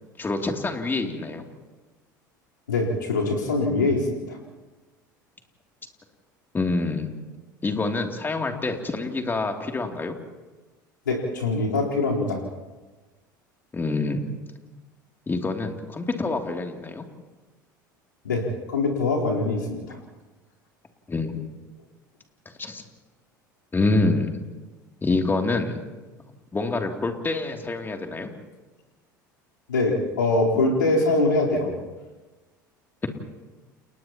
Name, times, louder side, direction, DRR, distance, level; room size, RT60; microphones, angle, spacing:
voice 1, 0.2-1.5 6.5-7.1 7.6-10.2 13.7-14.2 15.3-17.0 21.1-21.5 22.6-22.8 23.7-24.4 25.0-25.8 26.5-28.3, left 3 dB, 20° left, 3 dB, 2.8 m, -26 dB
voice 2, 2.7-4.4 11.1-12.4 18.2-20.0 29.7-31.7, left 2 dB, 80° left, -3 dB, 4.0 m, -23 dB
29.5 x 29.5 x 3.0 m, 1.2 s
figure-of-eight pair, 70°, 11 cm